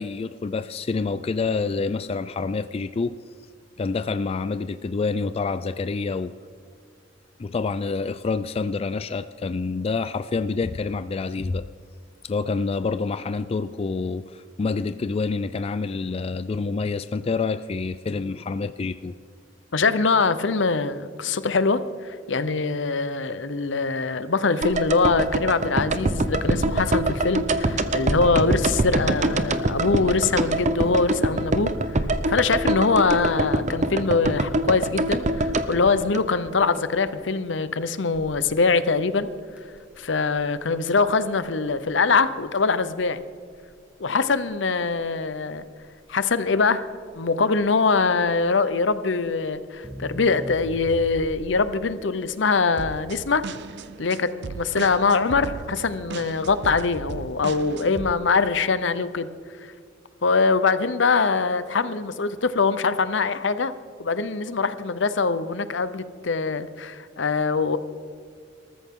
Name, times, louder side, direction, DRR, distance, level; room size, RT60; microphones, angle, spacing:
voice 1, 0.0-3.2 3.8-6.3 7.4-11.7 12.2-19.1, left 4 dB, 30° left, 12 dB, 0.3 m, -27 dB
voice 2, 19.7-31.7 32.3-39.3 40.0-43.2 44.0-45.6 46.1-46.9 47.1-53.4 54.0-59.3 59.6-59.7 60.2-63.7 64.0-67.8, left 4 dB, 70° left, 13 dB, 0.8 m, -23 dB
sound 1, 24.6-36.8 37.1-37.2, right 2 dB, 40° right, 0.8 m, -24 dB
Crackle, 38.4-51.7, equal, 5° right, 1.9 m, -43 dB
sound 2, 52.8-58.1, right 4 dB, 65° right, 0.5 m, -37 dB
20.5 x 14.0 x 3.7 m, 2.2 s
head